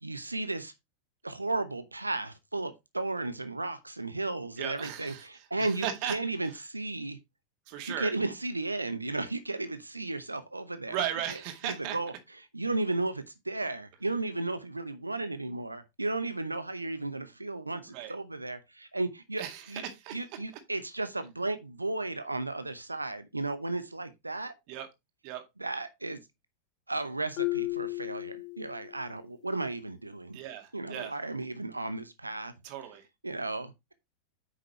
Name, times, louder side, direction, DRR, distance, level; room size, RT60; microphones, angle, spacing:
voice 1, 0.0-0.7 1.2-7.2 7.9-11.0 11.3-24.5 25.6-26.2 26.9-30.4 30.7-32.5 33.2-33.9, right 2 dB, 85° right, 0.7 m, -34 dB
voice 2, 4.6-5.2 5.6-6.1 7.7-8.1 10.9-12.0 17.9-18.1 19.4-20.2 24.7-24.9 25.2-25.4 30.3-31.1 32.6-33.1, right 10 dB, 45° right, 2.0 m, -36 dB
Marimba xylophone, 27.4-29.1, left 24 dB, 45° left, 0.7 m, -34 dB
9.2 x 6.1 x 3.0 m
figure-of-eight pair, 90°, 0 cm